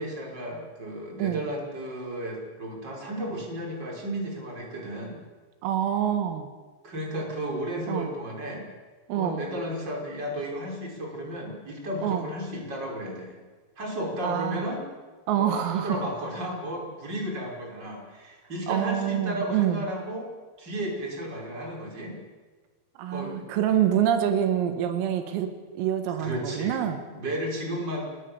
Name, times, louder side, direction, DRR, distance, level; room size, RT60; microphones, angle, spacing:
voice 1, 0.0-5.2 6.8-8.7 9.1-13.4 13.8-14.9 15.3-20.3 20.6-22.2 23.1-23.4 26.2-28.1, equal, 20° right, 0 dB, 5.7 m, -33 dB
voice 2, 5.6-6.5 7.9-8.1 9.1-9.4 12.0-12.2 14.2-14.7 15.3-16.0 18.7-19.9 23.0-27.0, right 10 dB, 85° right, 7 dB, 4.4 m, -26 dB
29.0 x 20.0 x 7.1 m, 1.4 s
omnidirectional pair, 5.9 m